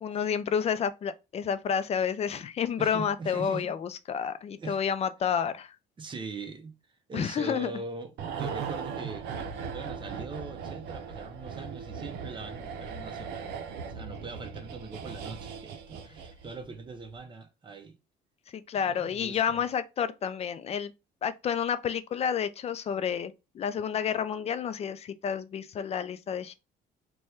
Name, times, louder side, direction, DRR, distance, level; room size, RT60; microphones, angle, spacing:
voice 1, 0.0-5.7 7.1-7.7 18.5-20.9 21.2-26.6, left 7 dB, 40° left, 0.4 m, -30 dB
voice 2, 2.8-3.8 4.5-4.8 6.0-6.8 7.1-13.5 13.8-18.0 18.7-19.7, right 3 dB, 30° right, 0.7 m, -41 dB
sound 1, 8.2-16.7 17.0-17.2, right 6 dB, 80° right, 0.6 m, -38 dB
3.2 x 2.3 x 4.2 m
cardioid pair, 110°, 17 cm